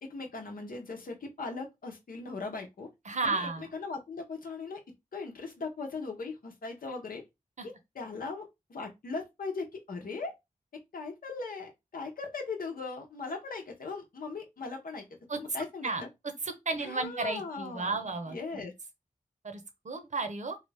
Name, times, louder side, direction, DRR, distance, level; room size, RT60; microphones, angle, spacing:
voice 1, 0.0-2.9 3.2-4.8 5.1-7.2 7.6-10.3 10.9-15.0 15.3-16.1 16.8-18.7, left 4 dB, 85° left, 0.8 m, -39 dB
voice 2, 3.1-3.7 7.6-7.7 15.3-15.4 15.8-16.0 16.4-18.6 19.4-20.6, right 3 dB, 55° right, 0.8 m, -33 dB
3.2 x 2.4 x 3.2 m
wide cardioid pair, 55°, 14 cm